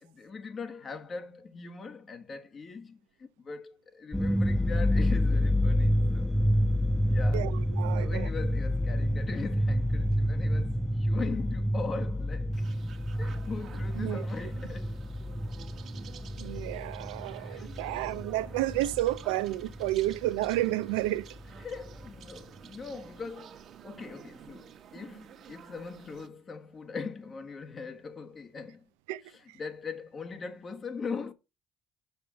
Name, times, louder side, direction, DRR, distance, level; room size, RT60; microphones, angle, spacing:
voice 1, 0.0-6.3 7.1-7.5 7.9-12.7 13.2-15.1 17.2-17.8 21.6-28.9 29.2-31.3, left 4 dB, 40° left, 1.5 m, -40 dB
sound 1, 4.1-19.2 19.5-20.6 20.9-21.0 21.4-22.1, equal, ahead, 0.6 m, -29 dB
voice 2, 7.8-8.3 14.0-14.2 16.4-21.3 29.1-29.2, right 16 dB, 90° right, 0.5 m, -31 dB
sound 2, 12.5-26.3, right 9 dB, 55° right, 1.4 m, -50 dB
7.2 x 5.6 x 6.3 m
supercardioid pair, 70°, 0 cm